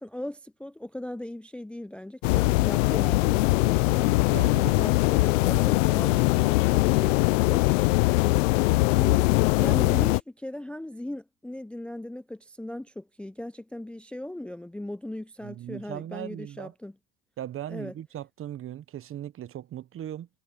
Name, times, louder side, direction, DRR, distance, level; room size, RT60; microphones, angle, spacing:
voice 1, 0.0-4.1 4.5-7.3 9.6-16.9 17.7-17.9, left 1 dB, 5° left, 0.6 m, -38 dB
sound 1, 2.2-10.2, left 22 dB, 85° left, 0.6 m, -22 dB
voice 2, 3.9-5.0 6.4-6.5 7.4-7.7 15.4-16.7 17.4-20.3, right 11 dB, 35° right, 1.0 m, -39 dB
supercardioid pair, 110°, 38 cm